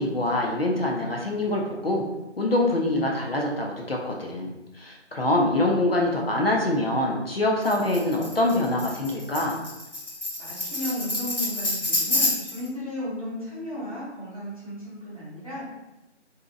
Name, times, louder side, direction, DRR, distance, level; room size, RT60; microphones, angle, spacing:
voice 1, 0.0-2.0 2.4-9.6, left 1 dB, 55° left, -1 dB, 0.5 m, -25 dB
Tambourine, 7.6-12.7, left 1 dB, 85° left, 1.1 m, -28 dB
voice 2, 10.4-15.7, left 1 dB, 30° right, -10 dB, 0.8 m, -34 dB
2.6 x 2.0 x 2.5 m, 0.97 s
figure-of-eight pair, 165°, 35 cm